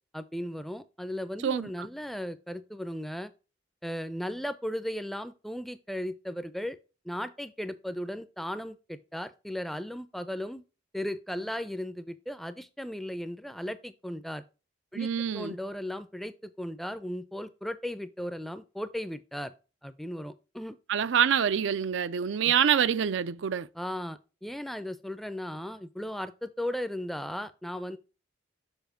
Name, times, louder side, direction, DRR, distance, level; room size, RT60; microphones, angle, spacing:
voice 1, 0.1-3.3 3.8-6.8 7.0-10.6 10.9-14.4 14.9-19.5 19.8-20.8 22.4-22.5 23.8-28.0, equal, ahead, 0.4 m, -36 dB
voice 2, 1.4-1.9 14.9-15.5 20.9-23.7, right 8 dB, 85° right, 0.4 m, -26 dB
7.1 x 5.0 x 3.7 m
head